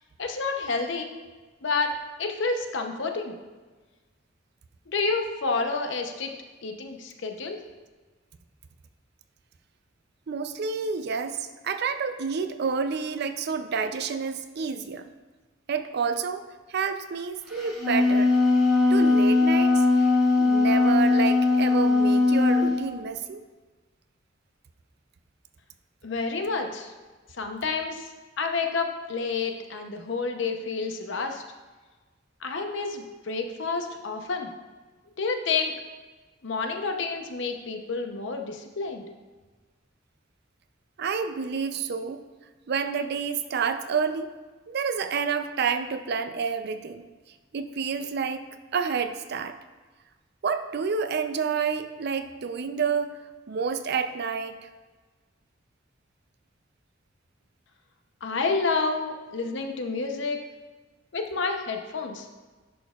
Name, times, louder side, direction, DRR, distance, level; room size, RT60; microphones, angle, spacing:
voice 1, 0.2-1.1 1.6-3.3 4.9-6.3 6.6-7.6 26.0-26.9 27.3-31.4 32.4-34.5 35.2-35.7 36.4-39.0 58.2-60.4 61.1-62.3, left 4 dB, 70° left, 5 dB, 0.8 m, -29 dB
voice 2, 10.3-15.1 15.7-18.4 18.8-20.1 20.4-23.4 41.0-42.2 42.7-44.3 44.7-47.1 47.5-48.5 48.7-49.6 50.4-53.2 53.5-54.5, right 5 dB, 60° right, 10 dB, 0.5 m, -29 dB
Wind instrument woodwind instrument, 17.6-22.7, left 3 dB, ahead, 1.7 m, -20 dB
10.5 x 6.3 x 2.4 m, 1.3 s
head